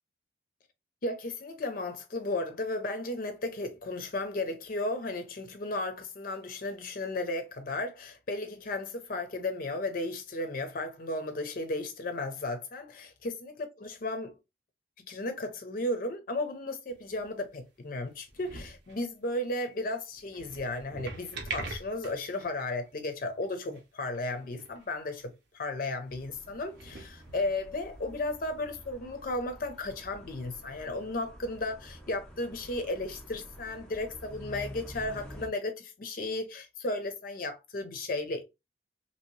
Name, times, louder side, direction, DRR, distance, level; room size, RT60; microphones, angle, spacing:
voice 1, 1.0-12.9 13.6-14.4 15.0-38.4, left 2 dB, 50° left, 0.5 m, -34 dB
sound 1, 16.9-17.5 18.1-19.0 20.1-22.5 22.9-23.0 23.4-23.5 23.7-23.8 24.1-24.9 25.1-25.2 26.1-26.2 26.6-27.8 28.6-28.7, right 3 dB, 65° right, 0.8 m, -43 dB
sound 2, 26.1-35.5, equal, 5° left, 0.6 m, -48 dB
2.8 x 2.8 x 3.0 m
head